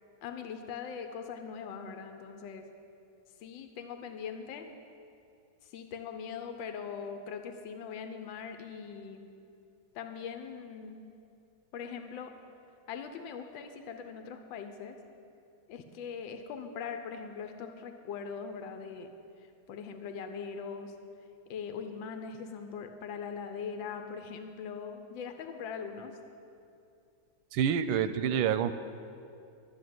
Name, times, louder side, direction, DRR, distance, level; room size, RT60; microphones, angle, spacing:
voice 1, 0.2-2.7 3.4-4.7 5.6-9.2 9.9-11.0 11.7-12.3 12.9-15.0 15.7-19.1 19.7-20.9 21.5-26.2, left 6 dB, 80° left, 6 dB, 1.5 m, -41 dB
voice 2, 27.5-28.7, right 8 dB, 90° right, 11 dB, 1.4 m, -27 dB
12.0 x 6.6 x 9.4 m, 2.6 s
omnidirectional pair, 2.1 m